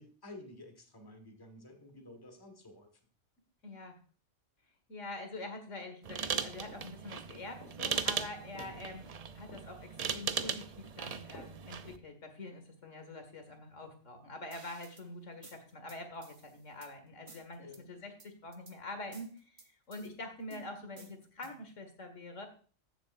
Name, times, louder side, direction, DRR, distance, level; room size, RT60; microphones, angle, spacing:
voice 1, 0.0-3.0 8.6-8.8 17.6-17.8, left 2 dB, 20° left, 5 dB, 1.5 m, -52 dB
voice 2, 3.6-4.0 4.9-9.1 9.3-19.6 19.9-22.5, left 2 dB, 85° left, 6 dB, 2.1 m, -45 dB
sound 1, 6.0-12.0, right 6 dB, 50° right, 0.5 m, -38 dB
sound 2, 6.7-7.4 7.6-8.2 8.6-10.1 10.4-11.0 11.3-11.6 11.9-12.0, left 1 dB, 65° left, 3.2 m, -54 dB
sound 3, 14.5-15.1 15.4-16.9 17.3-17.8 18.2-18.8 19.1-20.1 20.5-21.7, right 3 dB, 30° right, 1.0 m, -55 dB
15.0 x 7.2 x 2.5 m, 0.40 s
omnidirectional pair, 1.2 m